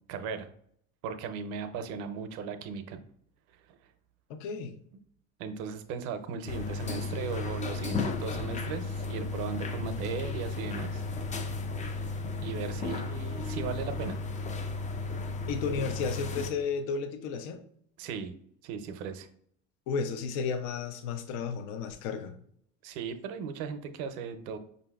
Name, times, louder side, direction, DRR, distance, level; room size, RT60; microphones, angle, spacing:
voice 1, 0.1-0.5 1.0-3.0 3.7-3.8 5.4-11.0 11.9-12.1 12.4-14.2 18.0-18.4 18.6-19.3 22.8-24.6, right 6 dB, 65° right, 9 dB, 0.6 m, -37 dB
voice 2, 4.3-4.8 15.5-17.6 19.9-22.4, left 5 dB, 70° left, 9 dB, 0.6 m, -33 dB
sound 1, 6.5-16.5, left 3 dB, 20° left, 0.3 m, -34 dB
5.0 x 2.6 x 2.3 m, 0.65 s
hypercardioid pair, 80°, 41 cm